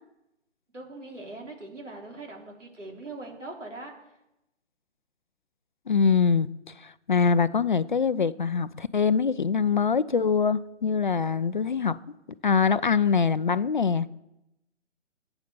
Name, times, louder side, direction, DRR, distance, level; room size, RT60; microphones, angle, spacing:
voice 1, 0.7-4.2, right 2 dB, 85° right, 3.4 m, -41 dB
voice 2, 5.9-6.5 6.8-12.0 12.4-14.1, left 6 dB, 45° left, 0.4 m, -23 dB
9.1 x 8.1 x 6.9 m
figure-of-eight pair, 145°, 36 cm